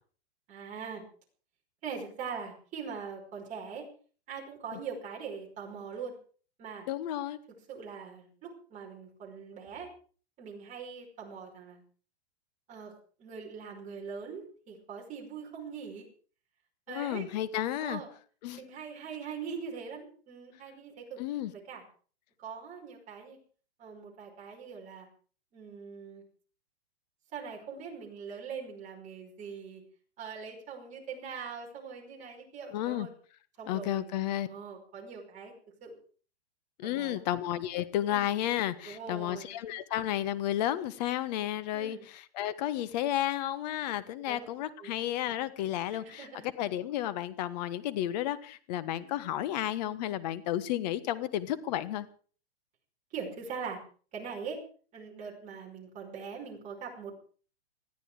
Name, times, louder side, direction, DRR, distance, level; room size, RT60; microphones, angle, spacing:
voice 1, 0.5-1.0 1.8-3.9 4.3-6.2 6.6-6.9 7.7-9.9 10.4-11.8 12.7-12.9 13.2-16.1 16.9-17.3 17.8-18.1 18.5-21.2 21.5-21.8 22.4-23.4 23.8-25.1 25.5-26.2 27.3-29.8 30.2-33.1 33.6-35.5 35.8-36.0 36.8-37.3 38.1-38.4 38.8-39.6 41.7-42.1 44.3-44.4 44.8-44.9 45.9-46.5 48.9-49.1 53.1-53.8 54.1-54.6 54.9-57.2, right 6 dB, 20° right, -1 dB, 5.4 m, -42 dB
voice 2, 6.9-7.4 16.9-18.0 18.4-18.6 21.2-21.5 32.7-33.1 33.7-34.5 36.8-46.3 46.6-52.0, left 12 dB, 40° left, 15 dB, 1.4 m, -32 dB
20.5 x 14.0 x 4.9 m, 0.42 s
hypercardioid pair, 155°, 33 cm